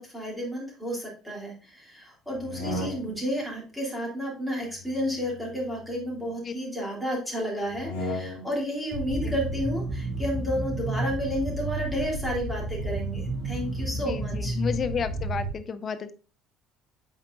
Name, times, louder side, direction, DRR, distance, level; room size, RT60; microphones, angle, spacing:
voice 1, 0.0-14.5, equal, ahead, -4 dB, 3.1 m, -31 dB
sound 1, 2.3-3.4 4.7-6.3 7.7-8.7, left 1 dB, 75° left, 1.3 m, -36 dB
sound 2, 8.9-15.5, right 1 dB, 45° right, 2.1 m, -31 dB
voice 2, 14.1-16.1, left 6 dB, 35° left, 10 dB, 0.6 m, -31 dB
8.4 x 4.5 x 2.5 m, 0.34 s
figure-of-eight pair, 55°, 0 cm